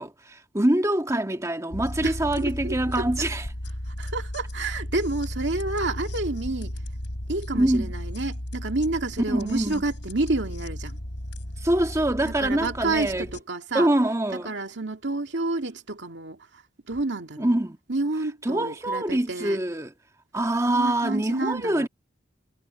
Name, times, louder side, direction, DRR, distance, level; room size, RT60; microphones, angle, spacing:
voice 1, 0.0-3.5 7.5-7.9 9.3-9.8 11.6-13.3 13.7-14.5 17.4-17.8 18.4-19.9 20.3-21.9, right 1 dB, 15° right, 1.7 m, -24 dB
sound 1, 1.7-13.4, left 1 dB, 75° left, 3.9 m, -35 dB
voice 2, 2.0-3.1 4.0-6.7 7.3-11.0 12.2-13.9 14.3-16.4 16.9-17.6 17.9-19.6 20.7-21.9, right 2 dB, 70° right, 2.3 m, -29 dB
head